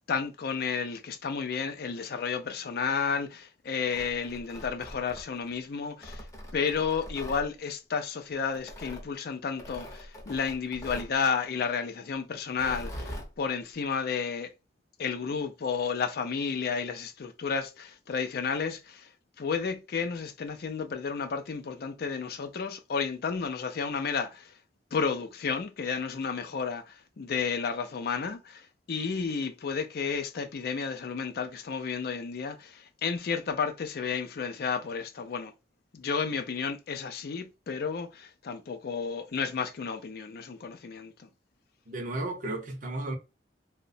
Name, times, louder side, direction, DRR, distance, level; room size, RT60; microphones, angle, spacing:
voice 1, 0.1-6.2 6.5-14.5 15.0-19.1 19.4-24.5 24.9-35.5 35.9-41.3, left 5 dB, 55° left, 0.4 m, -32 dB
Tearing, 3.7-5.5 6.0-7.5 8.5-9.0 9.6-11.2 12.5-13.3, equal, 20° left, 0.6 m, -42 dB
voice 2, 41.9-43.2, right 2 dB, 45° right, 0.6 m, -33 dB
2.8 x 2.1 x 2.6 m
head